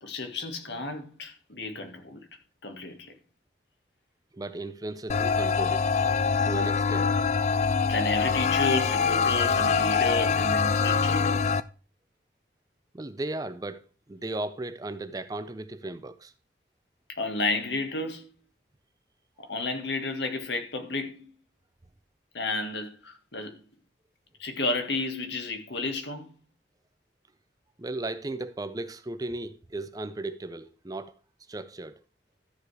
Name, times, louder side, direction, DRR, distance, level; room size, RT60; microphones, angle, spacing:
voice 1, 0.0-2.2 2.6-3.1 7.8-11.3 17.1-18.3 19.4-21.3 22.3-23.6 24.4-26.3, left 3 dB, 70° left, 1.6 m, -32 dB
voice 2, 4.3-7.2 12.9-16.3 27.8-31.1 31.5-32.0, right 2 dB, 20° right, 0.5 m, -36 dB
sound 1, 5.1-11.6, left 5 dB, 40° left, 0.4 m, -24 dB
13.0 x 4.9 x 4.8 m
head